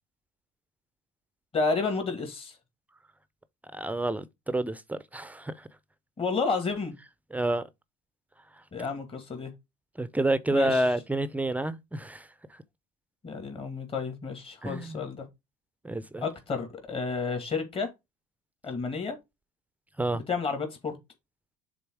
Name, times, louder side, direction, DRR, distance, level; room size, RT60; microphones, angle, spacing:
voice 1, 1.5-2.6 6.2-6.9 8.7-9.5 10.5-10.9 13.2-15.3 16.2-17.9 18.6-19.2 20.1-21.0, left 4 dB, 30° left, 2.3 m, -31 dB
voice 2, 3.7-5.7 7.3-7.6 10.0-12.3 14.6-15.0 15.8-16.2 20.0-20.2, right 1 dB, 10° right, 0.5 m, -29 dB
6.7 x 4.0 x 4.7 m
supercardioid pair, 95°, 19 cm